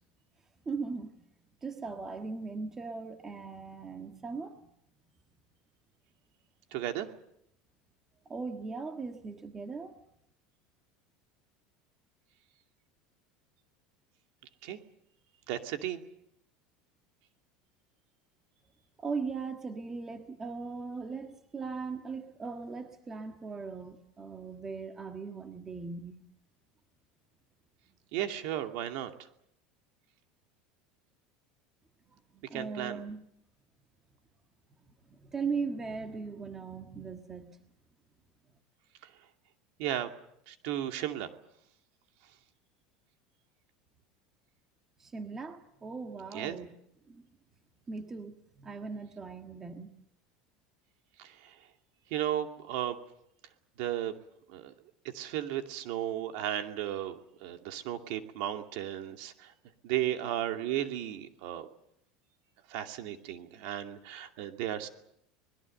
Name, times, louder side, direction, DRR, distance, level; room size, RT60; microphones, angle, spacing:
voice 1, 0.6-1.1 1.6-4.6 8.2-9.9 19.0-26.1 32.3-33.2 35.1-37.6 45.0-46.7 47.1-47.2 47.9-49.9, right 4 dB, 15° right, 6 dB, 1.5 m, -39 dB
voice 2, 6.7-7.1 14.6-14.8 15.5-16.0 28.1-29.1 32.5-33.0 39.8-40.1 40.5-41.3 46.3-46.5 51.2-51.5 52.1-53.0 53.8-54.1 54.5-54.7 55.1-59.5 59.8-61.7 62.7-64.9, right 12 dB, 60° right, 5 dB, 2.5 m, -34 dB
25.5 x 21.0 x 7.8 m, 0.75 s
cardioid pair, 170°, 3 cm